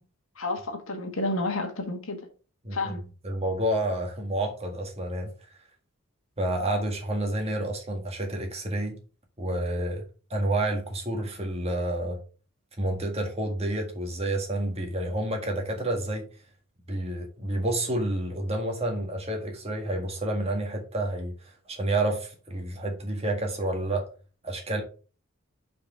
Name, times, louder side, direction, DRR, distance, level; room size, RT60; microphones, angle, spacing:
voice 1, 0.4-2.2 2.7-3.0, left 2 dB, 70° left, 1.4 m, -30 dB
voice 2, 3.2-5.3 6.4-9.0 9.4-10.0 10.3-12.2 12.8-16.3 16.9-21.3 21.7-24.1 24.4-24.8, right 1 dB, 30° right, 1.8 m, -29 dB
5.9 x 4.8 x 4.7 m
head